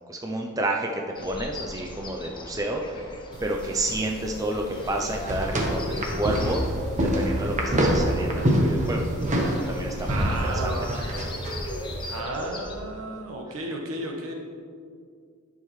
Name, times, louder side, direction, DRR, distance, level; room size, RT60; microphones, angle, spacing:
voice 1, 0.1-3.1 3.4-6.6 7.0-9.1 9.7-10.7, right 1 dB, 15° right, 1 dB, 0.5 m, -30 dB
sound 1, 1.2-12.8, left 1 dB, 20° left, 0.7 m, -38 dB
sound 2, 3.3-12.2, right 1 dB, 35° right, 1.1 m, -26 dB
voice 2, 10.1-11.0 12.1-14.3, right 1 dB, 70° right, 0 dB, 1.2 m, -33 dB
11.0 x 6.5 x 3.1 m, 2.2 s
head